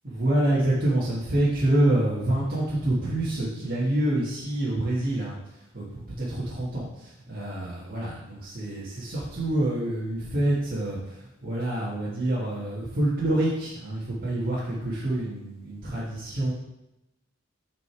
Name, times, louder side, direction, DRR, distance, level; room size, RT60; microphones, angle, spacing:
voice 1, 0.0-5.4 5.7-11.0 11.4-16.5, right 1 dB, 50° right, -8 dB, 1.7 m, -27 dB
6.3 x 5.2 x 4.7 m, 0.90 s
head